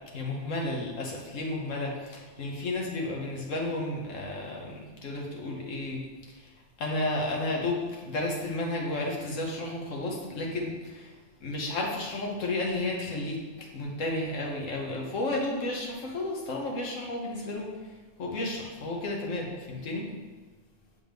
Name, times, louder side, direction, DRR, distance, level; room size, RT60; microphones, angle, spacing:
voice 1, 0.1-6.0 6.8-11.1 11.4-17.7 18.2-20.1, left 2 dB, 70° left, -2 dB, 1.5 m, -32 dB
7.6 x 4.2 x 3.5 m, 1.3 s
omnidirectional pair, 1.4 m